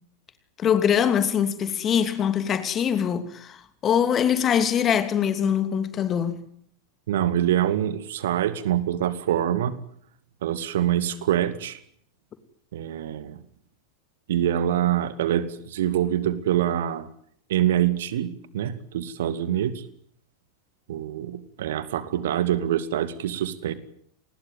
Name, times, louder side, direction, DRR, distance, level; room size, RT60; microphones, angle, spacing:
voice 1, 0.6-3.6 3.8-6.4, left 8 dB, 25° left, 2.8 m, -23 dB
voice 2, 7.1-9.8 10.4-11.8 12.7-13.4 14.3-17.1 17.5-19.8 20.9-23.7, right 11 dB, 55° right, 2.3 m, -25 dB
28.5 x 20.5 x 9.4 m
figure-of-eight pair, 90°, 0 cm